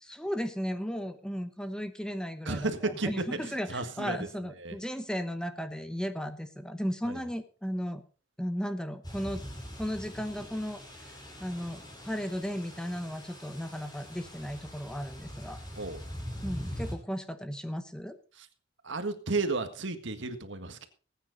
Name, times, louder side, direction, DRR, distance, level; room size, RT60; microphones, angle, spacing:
voice 1, 0.0-8.0 8.4-9.4 9.8-10.8 11.4-15.6 16.4-18.2, equal, 5° left, 10 dB, 0.9 m, -35 dB
voice 2, 2.5-4.2 4.6-4.8 7.1-7.2 15.8-16.0 18.4-18.5 18.8-20.9, right 3 dB, 65° right, 9 dB, 1.7 m, -33 dB
sound 1, 9.0-16.9, equal, 20° left, 4.4 m, -43 dB
20.0 x 9.2 x 4.0 m, 0.37 s
head